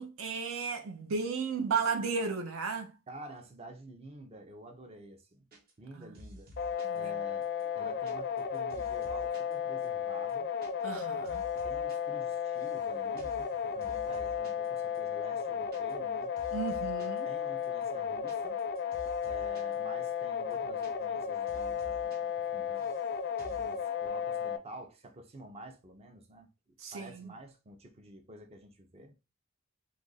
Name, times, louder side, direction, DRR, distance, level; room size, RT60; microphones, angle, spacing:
voice 1, 0.0-2.9 5.9-6.2 6.8-7.1 10.8-11.5 16.5-17.3 26.8-27.3, right 5 dB, 75° right, 0.6 m, -34 dB
voice 2, 3.1-5.5 5.8-6.5 6.9-7.5 7.7-10.5 11.6-16.3 17.0-18.6 19.2-23.0 23.4-26.5 26.9-29.1, right 1 dB, 30° right, 0.6 m, -49 dB
sound 1, 5.5-5.9 6.1-7.0 7.4-9.5 9.8-9.9 10.2-10.7 10.9-12.0 12.2-12.8 13.2-13.5 13.8-14.7 14.9-15.0 15.3-16.1 16.4-17.2 17.6-19.8 20.0-20.1 20.4-21.2 21.5-22.2 22.4-23.1 23.4-23.7, equal, 50° right, 1.0 m, -51 dB
sound 2, 6.6-24.6, left 7 dB, 55° left, 0.4 m, -34 dB
2.9 x 2.5 x 3.9 m
head